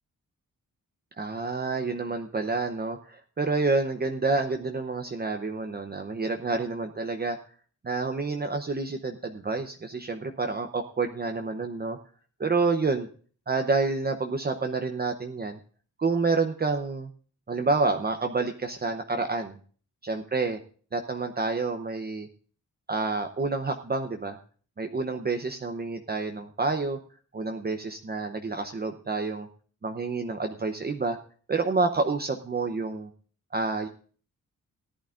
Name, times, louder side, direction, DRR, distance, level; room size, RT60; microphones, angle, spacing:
voice 1, 1.2-7.4 7.8-12.0 12.4-13.1 13.5-15.6 16.0-17.1 17.5-19.6 20.1-20.6 20.9-22.3 22.9-24.4 24.8-27.0 27.3-29.5 29.8-31.2 31.5-33.1 33.5-33.9, right 3 dB, 30° right, 5 dB, 0.8 m, -28 dB
17.5 x 11.0 x 2.5 m, 0.42 s
wide cardioid pair, 140°, 33 cm